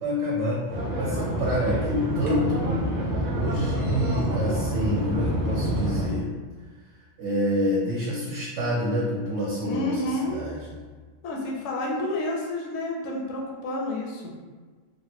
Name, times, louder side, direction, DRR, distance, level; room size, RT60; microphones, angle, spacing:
voice 1, 0.0-0.7 1.0-2.9 3.3-6.3 7.2-10.8, equal, 65° right, -5 dB, 0.9 m, -27 dB
sound 1, 0.7-6.1, equal, 30° right, 0.7 m, -27 dB
voice 2, 9.6-10.4 11.2-14.3, left 1 dB, 70° left, -1 dB, 0.9 m, -30 dB
3.1 x 2.1 x 2.7 m, 1.4 s
omnidirectional pair, 1.4 m